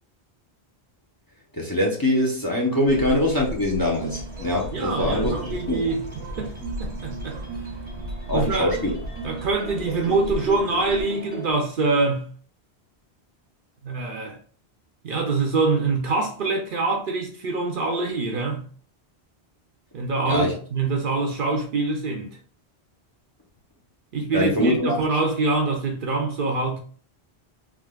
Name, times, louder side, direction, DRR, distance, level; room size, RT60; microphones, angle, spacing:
voice 1, 1.5-5.8 8.3-8.9 20.2-20.5 24.3-24.9, left 1 dB, 25° left, 0.6 m, -23 dB
Bird, 2.9-11.0, equal, 85° right, 1.0 m, -36 dB
sound 1, 4.0-11.5, right 4 dB, 10° right, 0.8 m, -37 dB
voice 2, 4.7-6.5 6.8-7.4 8.3-8.7 9.2-12.3 13.8-14.4 15.0-18.7 19.9-22.4 24.1-26.8, right 3 dB, 60° right, 0.6 m, -25 dB
3.5 x 2.4 x 2.2 m
omnidirectional pair, 1.1 m